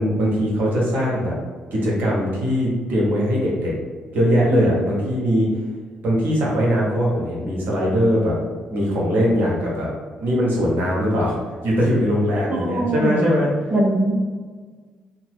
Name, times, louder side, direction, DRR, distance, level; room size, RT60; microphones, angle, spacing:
voice 1, 0.0-1.3 1.7-3.7 4.1-5.5 6.0-8.3 8.7-9.9 10.2-11.4 11.6-13.6, equal, 55° right, -4 dB, 0.9 m, -20 dB
voice 2, 12.5-13.3 13.7-14.2, right 1 dB, 30° right, 1 dB, 0.5 m, -21 dB
2.8 x 2.1 x 3.2 m, 1.5 s
figure-of-eight pair, 45°, 4 cm